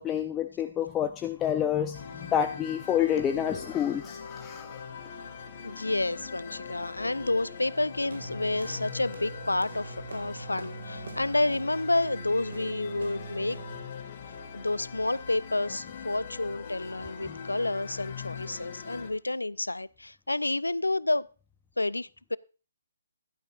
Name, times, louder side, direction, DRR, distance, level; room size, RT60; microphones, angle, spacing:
voice 1, 0.0-4.8 17.3-17.4, left 9 dB, 15° left, 0.6 m, -29 dB
sound 1, 1.9-19.1, left 6 dB, 40° left, 2.0 m, -42 dB
voice 2, 5.6-13.6 14.5-21.3 21.8-22.4, left 2 dB, 85° left, 0.4 m, -30 dB
sound 2, 8.1-13.9, right 5 dB, 65° right, 1.6 m, -43 dB
16.0 x 12.0 x 2.5 m
figure-of-eight pair, 140°, 0 cm